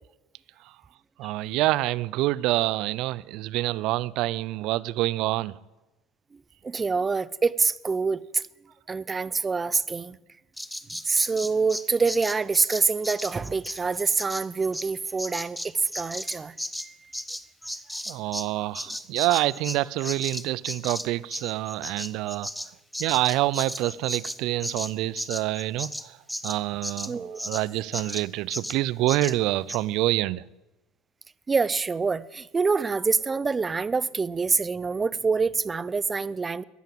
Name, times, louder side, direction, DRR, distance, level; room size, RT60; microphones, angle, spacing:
voice 1, 1.2-5.5 18.1-22.5 23.0-26.2 26.4-30.4, right 17 dB, 65° right, 0.5 m, -27 dB
voice 2, 6.3-8.4 8.9-10.2 11.1-16.6 16.8-16.9 27.1-27.4 31.5-36.6, right 4 dB, 25° right, 0.7 m, -26 dB
Bird vocalization bird call bird song, 10.6-18.5 18.7-27.6 27.9-28.3 28.5-28.8 29.1-29.4 29.7-29.8, equal, ahead, 0.9 m, -35 dB
14.5 x 10.5 x 9.0 m
hypercardioid pair, 85°, 0 cm